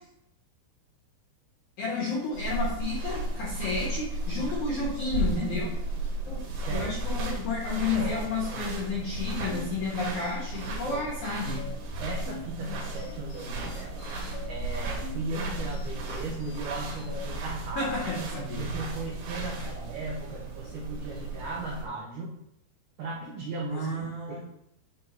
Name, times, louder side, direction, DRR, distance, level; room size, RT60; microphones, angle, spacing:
voice 1, 1.8-5.7 6.3-11.7 17.8-18.7 19.5-19.7 23.7-24.4, left 3 dB, 70° left, -4 dB, 1.8 m, -32 dB
sound 1, 2.3-21.9, right 2 dB, 70° right, 3.4 m, -34 dB
voice 2, 6.7-7.2 7.9-8.9 10.9-11.1 12.0-14.1 14.4-17.9 18.6-22.4 23.0-23.9 24.3-24.4, right 3 dB, 85° right, -3 dB, 1.8 m, -37 dB
sound 2, 9.0-17.3, left 9 dB, 90° left, 3.0 m, -45 dB
8.4 x 4.0 x 4.3 m, 0.80 s
omnidirectional pair, 5.3 m